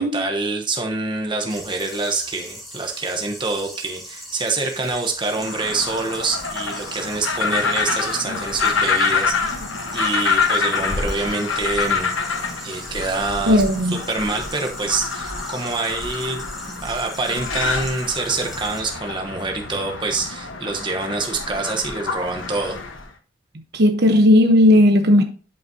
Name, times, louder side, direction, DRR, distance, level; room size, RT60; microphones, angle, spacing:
voice 1, 0.0-9.6 9.9-12.1 12.6-13.6 13.9-22.8, right 3 dB, 25° right, 1.0 m, -26 dB
sound 1, 1.5-18.8, equal, ahead, 2.1 m, -40 dB
sound 2, 5.3-23.1, left 4 dB, 70° left, 1.2 m, -26 dB
voice 2, 13.5-14.0 23.7-25.2, left 1 dB, 55° right, 1.0 m, -15 dB
11.0 x 5.5 x 2.8 m
head